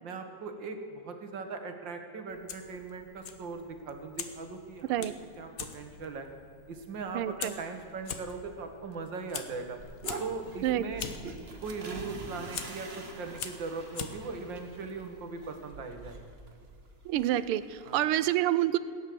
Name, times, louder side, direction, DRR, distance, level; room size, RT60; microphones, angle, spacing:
voice 1, 0.0-5.1 5.4-6.3 6.7-9.8 10.2-11.1 11.6-16.3 17.9-18.0, right 4 dB, 60° right, 6 dB, 2.1 m, -39 dB
Fire, 2.3-15.7, left 6 dB, 50° left, 1.2 m, -45 dB
voice 2, 7.1-7.5 10.6-10.9 17.0-18.8, right 13 dB, 90° right, 15 dB, 1.6 m, -28 dB
sound 1, 9.8-18.0, right 3 dB, 30° right, 1.5 m, -45 dB
17.0 x 9.8 x 7.7 m, 2.4 s
omnidirectional pair, 2.4 m